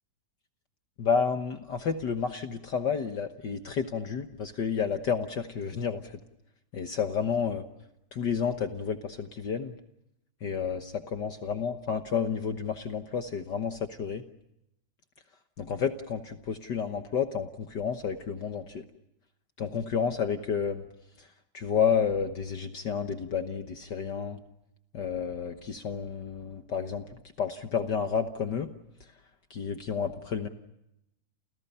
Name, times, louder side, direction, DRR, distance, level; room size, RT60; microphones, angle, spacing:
voice 1, 1.0-6.2 6.7-7.6 8.1-9.8 10.4-14.2 15.6-18.8 19.6-20.9 21.5-24.4 24.9-27.0 27.4-28.7 29.5-30.5, left 6 dB, 70° left, 7 dB, 1.0 m, -30 dB
29.5 x 29.5 x 5.5 m, 0.84 s
omnidirectional pair, 3.6 m